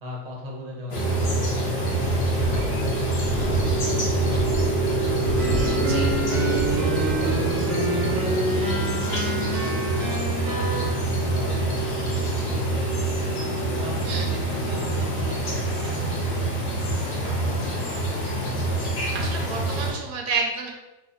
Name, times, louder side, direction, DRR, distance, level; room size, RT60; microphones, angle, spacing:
voice 1, 0.0-5.2 5.7-13.3 13.8-18.1, equal, 55° right, -2 dB, 0.5 m, -40 dB
sound 1, 0.9-19.9, right 2 dB, 55° left, 1.2 m, -25 dB
Wind, 1.9-7.6, left 1 dB, 75° left, 0.5 m, -31 dB
sound 2, 5.4-10.9, right 1 dB, 90° right, 1.4 m, -29 dB
voice 2, 5.5-6.1 14.0-14.3 19.1-20.7, right 4 dB, 75° right, 1 dB, 1.0 m, -30 dB
3.3 x 2.2 x 3.8 m, 1.1 s
omnidirectional pair, 1.9 m